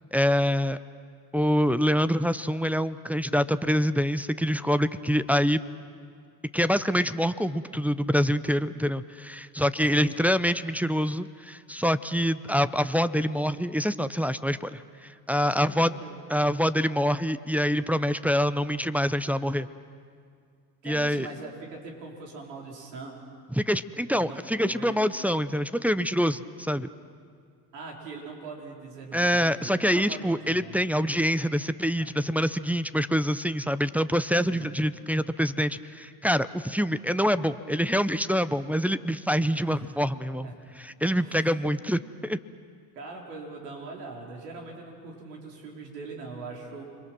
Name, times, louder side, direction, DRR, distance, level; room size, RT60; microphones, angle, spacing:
voice 1, 0.1-0.8 1.3-5.6 6.5-15.9 16.3-19.7 20.8-21.3 23.6-26.9 29.1-40.5 40.8-42.4, equal, 5° right, 12 dB, 0.7 m, -25 dB
voice 2, 15.6-16.2 20.8-23.1 24.1-25.0 27.7-30.7 32.0-32.1 34.5-34.7 39.6-40.0 40.4-40.6 41.2-41.6 42.9-46.8, right 3 dB, 85° right, -1 dB, 4.5 m, -42 dB
29.5 x 23.0 x 6.1 m, 2.2 s
hypercardioid pair, 70°, 47 cm